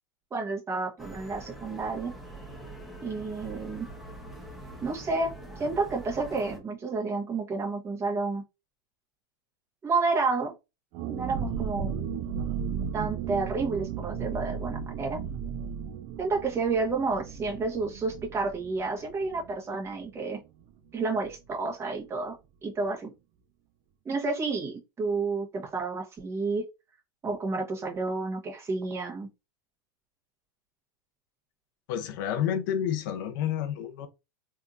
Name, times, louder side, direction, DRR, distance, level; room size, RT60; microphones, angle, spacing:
voice 1, 0.3-2.1 3.0-3.9 4.8-8.4 9.8-10.5 11.1-11.9 12.9-15.2 16.2-20.4 20.9-22.3 22.6-23.1 24.0-26.6 27.2-29.3, right 3 dB, 20° right, 1.3 m, -30 dB
sound 1, 1.0-6.6, right 1 dB, ahead, 1.0 m, -44 dB
sound 2, 10.9-20.4 20.6-20.7 21.0-21.3, right 7 dB, 45° right, 0.5 m, -35 dB
voice 2, 31.9-34.1, left 9 dB, 65° left, 0.6 m, -29 dB
3.5 x 2.7 x 2.5 m
hypercardioid pair, 115°, 12 cm